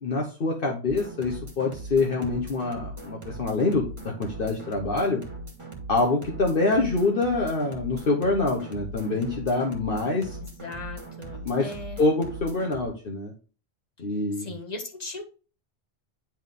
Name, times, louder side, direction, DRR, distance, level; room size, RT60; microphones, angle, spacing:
voice 1, 0.0-5.2 5.9-10.4 11.4-11.7 12.0-13.3 14.0-14.5, left 3 dB, 55° left, 0 dB, 1.3 m, -25 dB
sound 1, 0.9-12.8, right 2 dB, 30° right, 1.8 m, -40 dB
voice 2, 10.4-12.0 14.3-15.2, left 2 dB, 40° left, 3 dB, 1.6 m, -38 dB
10.0 x 3.8 x 3.7 m, 0.36 s
omnidirectional pair, 1.1 m